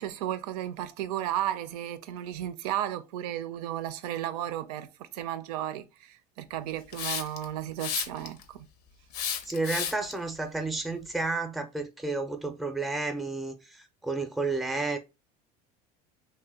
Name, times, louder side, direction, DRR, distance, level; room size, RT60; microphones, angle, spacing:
voice 1, 0.0-8.7, right 12 dB, 85° right, 0.5 m, -34 dB
Hiss, 6.9-7.4 7.8-8.4 9.1-10.1, left 8 dB, 85° left, 0.6 m, -32 dB
voice 2, 9.4-15.0, right 3 dB, ahead, 0.5 m, -31 dB
2.8 x 2.2 x 3.4 m
supercardioid pair, 120°, 19 cm